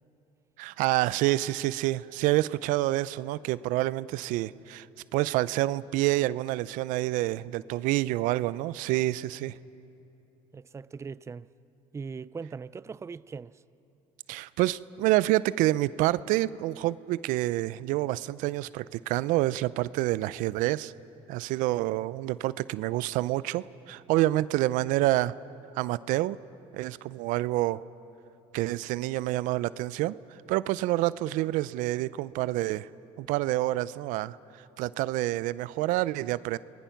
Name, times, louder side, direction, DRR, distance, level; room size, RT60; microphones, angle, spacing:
voice 1, 0.6-4.9 5.1-9.5 14.3-20.9 21.3-25.3 25.8-26.4 26.7-27.8 28.5-30.1 30.5-32.9 33.2-34.4 34.8-36.6, right 17 dB, 75° right, 0.5 m, -27 dB
voice 2, 10.5-11.5 11.9-13.6, right 5 dB, 20° right, 0.4 m, -40 dB
30.0 x 20.5 x 5.8 m
supercardioid pair, 80°, 14 cm